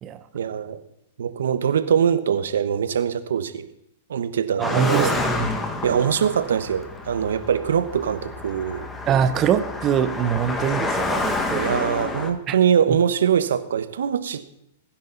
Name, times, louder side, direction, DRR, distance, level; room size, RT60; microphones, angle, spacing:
voice 1, 0.3-0.8 1.2-3.7 4.1-5.2 5.8-8.9 11.5-14.5, right 8 dB, 85° right, 12 dB, 1.2 m, -22 dB
Car passing by, 4.6-12.3, left 2 dB, 15° left, 1.9 m, -28 dB
voice 2, 4.6-5.3 9.1-11.7 12.5-12.6 12.9-13.0, right 8 dB, 30° right, 11 dB, 1.2 m, -23 dB
21.5 x 10.5 x 4.1 m, 0.75 s
hypercardioid pair, 135°, 0 cm